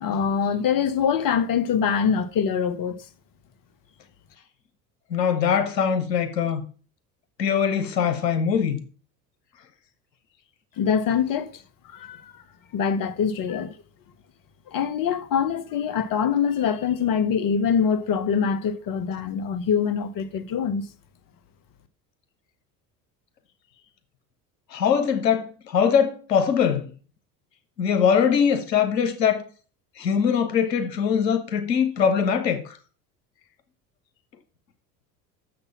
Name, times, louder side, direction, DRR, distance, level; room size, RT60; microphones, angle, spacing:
voice 1, 0.0-3.0 10.8-12.3 12.7-13.7 14.7-20.9, left 7 dB, 45° left, 1.2 m, -24 dB
voice 2, 5.1-6.7 7.4-8.8 24.7-26.9 27.8-29.4 30.0-32.8, left 7 dB, 85° left, 1.3 m, -22 dB
6.9 x 6.6 x 7.1 m
hypercardioid pair, 75°, 48 cm